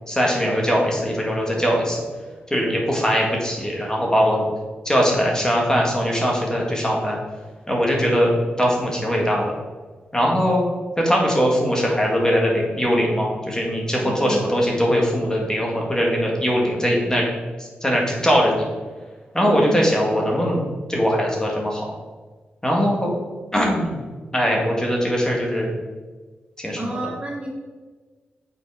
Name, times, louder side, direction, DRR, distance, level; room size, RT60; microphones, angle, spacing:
voice 1, 0.1-2.0 2.5-4.4 4.9-7.2 7.7-8.3 8.6-9.5 10.1-10.6 11.0-17.3 17.8-18.6 19.3-20.6 20.9-21.9 22.6-23.1 23.5-24.0 24.3-25.7 26.6-27.1, equal, 15° left, -1 dB, 1.8 m, -21 dB
voice 2, 14.0-14.4 19.3-19.9 26.8-27.5, right 1 dB, 30° right, -1 dB, 1.3 m, -30 dB
5.9 x 4.1 x 4.8 m, 1.4 s
cardioid pair, 65°, 4 cm